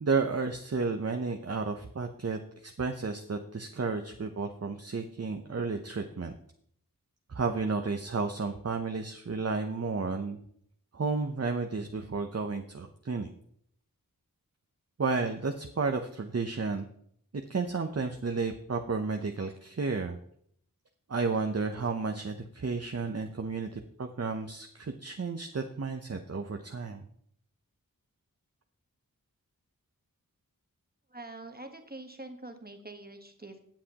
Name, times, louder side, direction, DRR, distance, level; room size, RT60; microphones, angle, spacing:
voice 1, 0.0-6.4 7.3-10.4 10.9-13.3 15.0-16.9 17.3-20.2 21.1-27.0, right 4 dB, 45° right, 5 dB, 0.7 m, -32 dB
voice 2, 31.1-33.6, right 2 dB, 25° right, 5 dB, 1.3 m, -45 dB
16.0 x 7.5 x 2.9 m, 0.67 s
wide cardioid pair, 50°, 36 cm